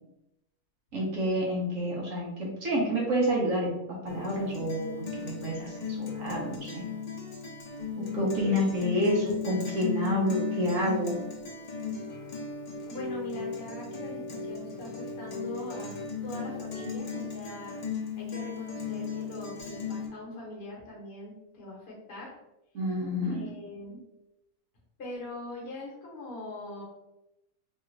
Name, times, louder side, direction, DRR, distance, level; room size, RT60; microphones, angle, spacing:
voice 1, 0.9-6.8 8.0-11.2 22.7-23.5, equal, 70° right, -3 dB, 1.1 m, -29 dB
Guitar, 4.1-20.1, left 5 dB, 85° left, 0.3 m, -36 dB
voice 2, 8.1-8.7 12.9-17.7 18.2-22.3 23.2-24.0 25.0-26.8, left 1 dB, 45° left, -5 dB, 1.1 m, -41 dB
3.2 x 2.3 x 3.1 m, 0.91 s
omnidirectional pair, 1.5 m